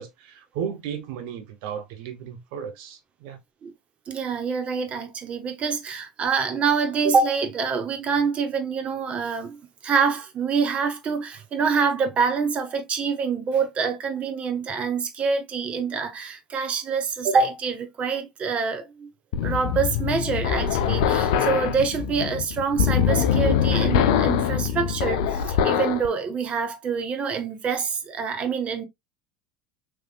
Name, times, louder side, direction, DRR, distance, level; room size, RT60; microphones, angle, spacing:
voice 1, 0.0-3.4, right 8 dB, 70° right, 0.8 m, -35 dB
voice 2, 4.1-19.1 19.4-28.8, right 5 dB, 40° right, 0.9 m, -26 dB
sound 1, 19.3-26.1, left 8 dB, 75° left, 0.5 m, -23 dB
3.4 x 3.2 x 2.3 m
hypercardioid pair, 80°, 3 cm